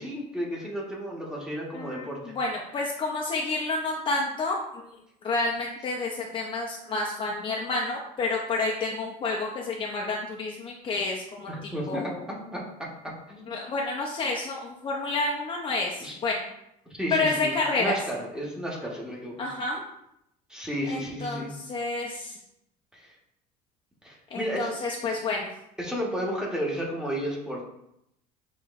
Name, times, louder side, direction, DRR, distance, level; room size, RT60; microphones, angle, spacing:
voice 1, 0.0-2.4 11.5-12.1 12.4-12.9 13.3-13.5 16.0-16.2 16.9-19.5 20.5-21.5 22.9-23.1 24.0-24.7 25.8-27.6, equal, 5° right, -4 dB, 1.1 m, -33 dB
voice 2, 1.7-4.8 5.2-12.2 13.5-16.4 17.1-18.0 19.4-19.8 20.8-22.4 24.3-25.5, left 3 dB, 30° left, -2 dB, 0.5 m, -29 dB
7.4 x 3.0 x 2.4 m, 0.80 s
cardioid pair, 150°, 18 cm